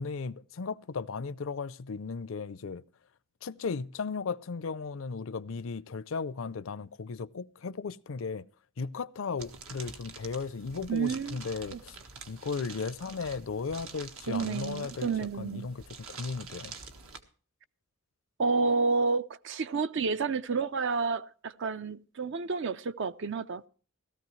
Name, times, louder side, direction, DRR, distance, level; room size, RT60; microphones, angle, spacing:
voice 1, 0.0-2.8 3.4-8.5 8.8-12.0 12.3-15.1 15.4-16.7, left 4 dB, 65° left, 0.5 m, -36 dB
sound 1, 9.4-17.2, right 5 dB, 75° right, 1.6 m, -47 dB
voice 2, 10.9-11.4 11.7-11.8 14.3-15.7 18.4-23.6, right 4 dB, 60° right, 0.5 m, -30 dB
17.0 x 14.0 x 3.1 m
head